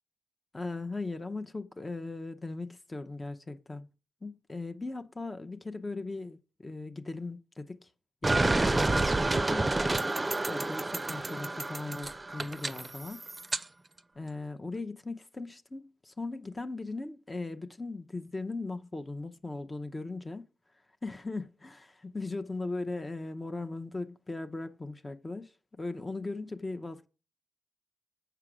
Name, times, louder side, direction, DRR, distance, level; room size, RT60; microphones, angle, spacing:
voice 1, 0.5-3.9 4.2-7.9 8.2-10.1 10.5-13.2 14.1-20.4 21.0-27.1, left 3 dB, 30° left, 0.7 m, -38 dB
sound 1, 8.2-13.6, right 2 dB, 25° right, 0.5 m, -29 dB
6.8 x 4.8 x 6.1 m
supercardioid pair, 45°, 0 cm